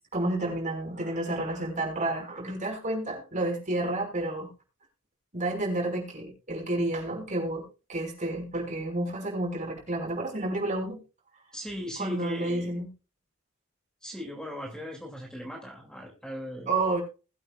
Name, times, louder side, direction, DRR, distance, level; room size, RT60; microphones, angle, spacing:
voice 1, 0.1-4.5 5.3-11.0 12.0-12.9 16.7-17.0, right 2 dB, 35° right, 0 dB, 5.9 m, -30 dB
voice 2, 11.5-12.8 14.0-16.7, left 1 dB, 5° left, 0 dB, 2.9 m, -38 dB
21.0 x 8.8 x 2.5 m, 0.32 s
head